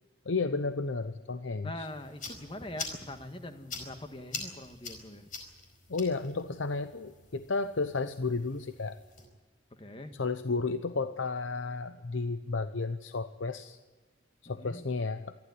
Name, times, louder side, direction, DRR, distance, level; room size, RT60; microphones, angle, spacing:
voice 1, 0.3-1.9 5.9-9.0 10.2-13.8 14.4-15.3, left 3 dB, 90° left, 10 dB, 0.8 m, -32 dB
voice 2, 1.6-5.2 9.8-10.1 14.4-14.8, left 1 dB, 30° left, 7 dB, 1.5 m, -43 dB
sound 1, 1.8-9.2, left 4 dB, 45° left, 4.7 m, -45 dB
26.5 x 12.0 x 9.7 m, 1.3 s
head